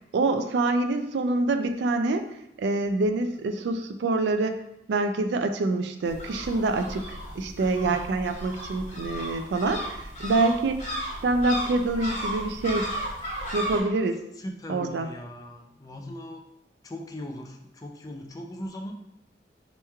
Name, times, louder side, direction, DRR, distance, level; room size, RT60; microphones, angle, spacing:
voice 1, 0.1-2.2 2.6-4.6 4.9-10.8 11.2-12.9 13.5-14.3 14.7-15.1, right 3 dB, 75° right, 7 dB, 0.3 m, -26 dB
sound 1, 6.0-13.8, equal, 45° left, 1.1 m, -35 dB
voice 2, 7.2-8.0 14.4-16.4 16.8-18.9, left 1 dB, 20° left, 2 dB, 0.3 m, -39 dB
4.3 x 3.0 x 2.3 m, 0.80 s
head